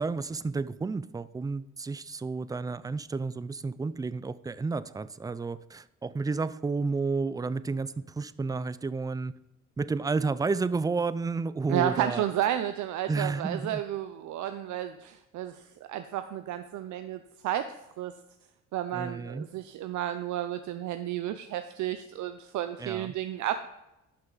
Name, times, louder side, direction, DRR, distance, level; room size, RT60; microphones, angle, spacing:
voice 1, 0.0-9.3 9.8-12.2 13.1-13.8 18.9-19.5 22.8-23.1, right 4 dB, 15° right, 16 dB, 0.3 m, -31 dB
voice 2, 11.7-17.7 18.0-18.1 18.7-23.6, right 11 dB, 75° right, 9 dB, 0.6 m, -32 dB
12.0 x 5.7 x 3.9 m, 0.93 s
cardioid pair, 90°, 30 cm